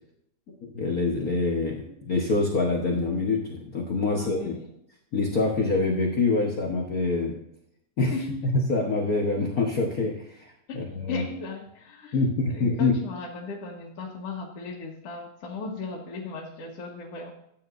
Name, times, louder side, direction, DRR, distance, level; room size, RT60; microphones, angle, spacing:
voice 1, 0.6-4.6 5.1-7.4 8.0-8.1 8.7-11.2 12.1-12.9, left 3 dB, 80° left, -2 dB, 0.8 m, -25 dB
voice 2, 4.2-4.8 8.1-8.5 10.7-17.3, left 3 dB, 55° left, -4 dB, 2.1 m, -37 dB
14.0 x 8.9 x 2.6 m, 0.74 s
omnidirectional pair, 3.5 m